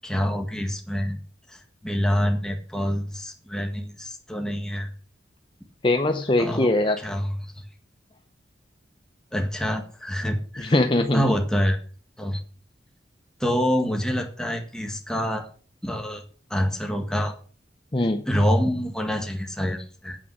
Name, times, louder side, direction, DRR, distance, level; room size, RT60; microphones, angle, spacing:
voice 1, 0.0-1.2 1.5-4.9 6.4-6.7 7.0-7.4 9.3-10.7 11.1-11.8 12.2-12.4 13.4-15.5 15.8-16.2 16.5-17.3 18.3-20.2, equal, 5° left, 3 dB, 1.7 m, -26 dB
voice 2, 5.8-7.0 10.6-11.3 17.9-18.2, left 2 dB, 25° left, 6 dB, 0.7 m, -21 dB
9.0 x 8.8 x 5.9 m, 0.42 s
head